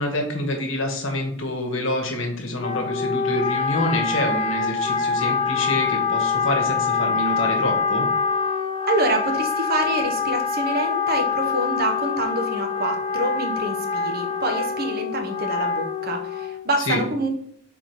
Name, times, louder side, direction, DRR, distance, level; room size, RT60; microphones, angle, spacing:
voice 1, 0.0-8.1 16.9-17.0, left 1 dB, 75° left, 3 dB, 1.1 m, -26 dB
Wind instrument woodwind instrument, 2.6-16.7, left 5 dB, 30° left, 0.5 m, -25 dB
voice 2, 8.9-17.3, right 1 dB, 50° right, 3 dB, 0.8 m, -26 dB
4.1 x 2.7 x 4.4 m, 0.65 s
head